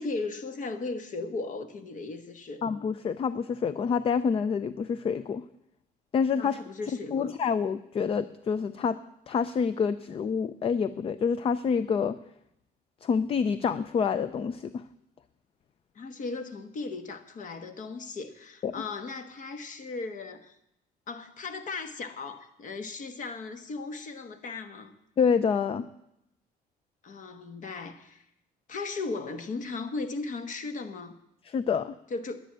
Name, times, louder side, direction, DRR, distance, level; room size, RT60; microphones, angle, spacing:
voice 1, 0.0-2.6 6.4-7.3 15.9-20.5 21.1-25.0 27.0-28.2 28.7-31.2 32.1-32.4, left 3 dB, 50° left, 9 dB, 1.3 m, -37 dB
voice 2, 2.6-5.4 6.1-6.6 7.1-9.0 9.3-12.2 13.0-14.8 18.6-18.7 25.2-25.9 31.5-31.9, left 6 dB, 35° left, 14 dB, 0.5 m, -27 dB
10.5 x 10.0 x 7.5 m, 0.81 s
cardioid pair, 110°, 17 cm